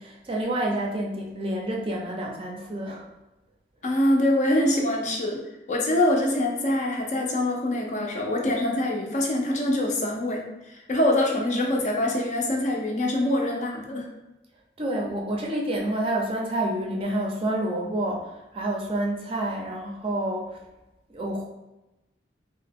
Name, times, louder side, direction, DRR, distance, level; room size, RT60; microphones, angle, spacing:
voice 1, 0.0-3.1 14.8-20.6 21.1-21.5, right 1 dB, 30° right, -1 dB, 0.5 m, -28 dB
voice 2, 3.8-5.4 5.7-14.1, left 1 dB, 40° left, 0 dB, 0.5 m, -24 dB
2.8 x 2.1 x 3.4 m, 0.98 s
head